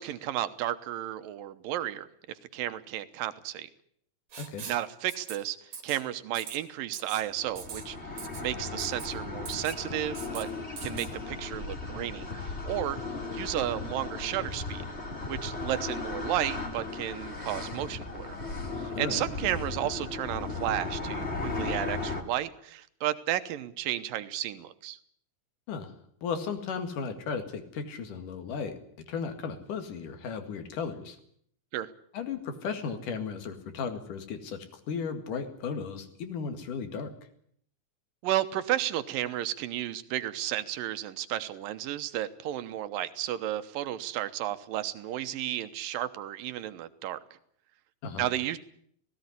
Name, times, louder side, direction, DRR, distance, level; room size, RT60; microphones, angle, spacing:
voice 1, 0.0-2.1 2.5-3.7 4.7-5.6 5.8-8.0 8.4-10.5 10.8-13.0 13.3-14.8 15.3-18.3 18.8-25.0 31.7-31.9 38.2-47.2 48.2-48.6, right 13 dB, 75° right, 12 dB, 2.7 m, -33 dB
Writing, 4.3-4.8 5.1-5.4 5.7-6.0 6.3-6.6 6.9-7.2 7.6-7.8 8.2-8.4 8.8-9.1 9.5-9.8 10.1-10.4 10.8-11.1, right 6 dB, 50° right, 3.3 m, -42 dB
sound 1, 7.3-22.2, left 3 dB, 20° left, 2.4 m, -36 dB
voice 2, 26.2-28.7 29.1-31.2 32.1-37.1 48.0-48.3, left 5 dB, 65° left, 8 dB, 3.5 m, -35 dB
18.0 x 17.5 x 9.8 m, 0.66 s
omnidirectional pair, 4.2 m